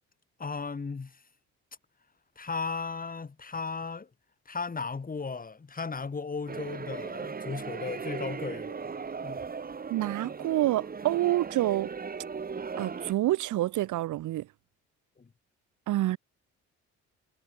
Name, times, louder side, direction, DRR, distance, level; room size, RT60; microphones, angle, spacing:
voice 1, 0.4-1.1 2.4-4.1 4.5-8.9 9.2-9.4 15.2-15.3, left 4 dB, 30° left, 2.7 m, -35 dB
sound 1, 6.5-13.1, right 5 dB, 30° right, 1.5 m, -38 dB
voice 2, 9.9-11.9 12.8-14.5 15.9-16.2, right 15 dB, 80° right, 1.2 m, -27 dB
cardioid pair, 90°, 30 cm